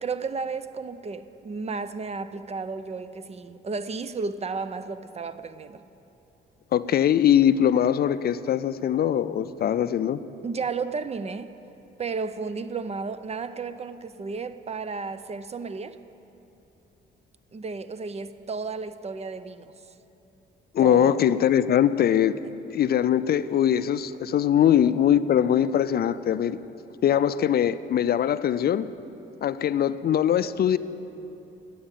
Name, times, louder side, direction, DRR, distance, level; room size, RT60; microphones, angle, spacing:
voice 1, 0.0-5.8 10.4-11.5 12.0-16.0 17.5-19.7 20.8-21.2, right 4 dB, 35° right, 13 dB, 0.6 m, -33 dB
voice 2, 6.7-10.2 20.7-22.4 22.7-26.6 27.0-28.9 29.4-30.8, left 10 dB, 50° left, 14 dB, 0.4 m, -22 dB
14.0 x 9.4 x 7.4 m, 2.9 s
cardioid pair, 90°, 20 cm